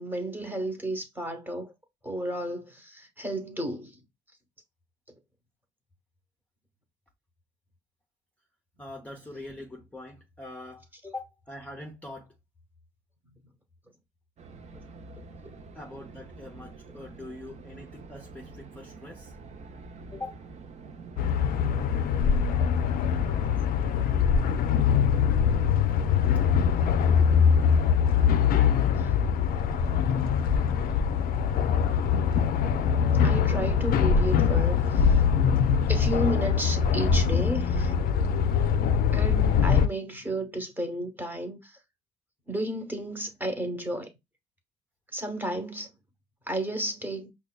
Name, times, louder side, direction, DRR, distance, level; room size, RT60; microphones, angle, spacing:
voice 1, 0.0-1.7 2.0-4.0 15.4-15.5 26.8-26.9 33.2-35.1 35.9-37.9 39.1-41.8 42.5-44.1 45.1-45.9 46.5-47.3, right 1 dB, 10° right, 0.9 m, -33 dB
voice 2, 8.8-12.3 15.7-19.3 20.1-20.4 28.6-28.8, left 2 dB, 10° left, 0.6 m, -43 dB
sound 1, 14.4-24.1, right 3 dB, 40° right, 0.6 m, -47 dB
sound 2, 21.2-39.9, left 7 dB, 60° left, 0.4 m, -23 dB
5.1 x 2.2 x 2.2 m
cardioid pair, 110°, 17 cm